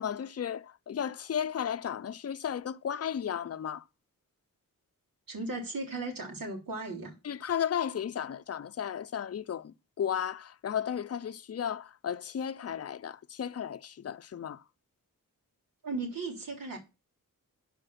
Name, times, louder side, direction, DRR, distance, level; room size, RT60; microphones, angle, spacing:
voice 1, 0.0-3.8 7.2-14.6, left 8 dB, 45° left, 0.6 m, -34 dB
voice 2, 5.3-7.1 15.8-16.8, right 3 dB, 80° right, 3.6 m, -36 dB
12.0 x 5.2 x 5.7 m
wide cardioid pair, 145°, 34 cm